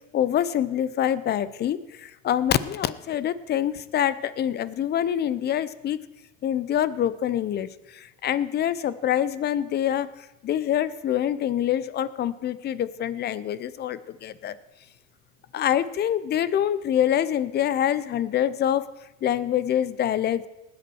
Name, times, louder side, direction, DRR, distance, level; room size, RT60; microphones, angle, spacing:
voice 1, 0.1-6.0 6.4-10.1 10.4-14.6 15.5-18.8 19.2-20.4, left 10 dB, 25° left, 17 dB, 0.6 m, -25 dB
19.5 x 8.2 x 4.6 m, 0.96 s
supercardioid pair, 110°, 39 cm